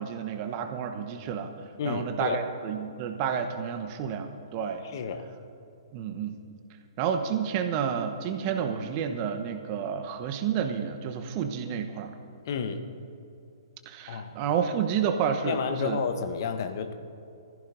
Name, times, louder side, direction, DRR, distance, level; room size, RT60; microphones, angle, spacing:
voice 1, 0.0-1.5 1.8-4.8 5.9-6.4 7.0-12.1 13.9-16.0, right 7 dB, 35° right, 7 dB, 1.0 m, -30 dB
voice 2, 1.8-2.4 4.9-5.2 12.4-12.8 14.1-14.4 15.4-16.9, left 6 dB, 50° left, 7 dB, 1.0 m, -31 dB
21.5 x 15.0 x 2.7 m, 2.5 s
figure-of-eight pair, 120°, 3 cm